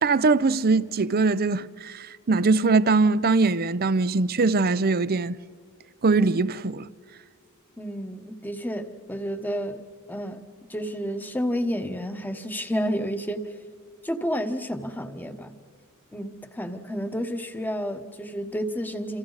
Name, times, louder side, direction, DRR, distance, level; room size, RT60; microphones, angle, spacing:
voice 1, 0.0-5.4 6.0-6.9, right 3 dB, 45° right, 0.6 m, -22 dB
voice 2, 7.8-10.4 10.7-13.5 14.0-15.5 16.1-19.2, equal, 10° left, 1.2 m, -30 dB
28.5 x 28.0 x 4.1 m
head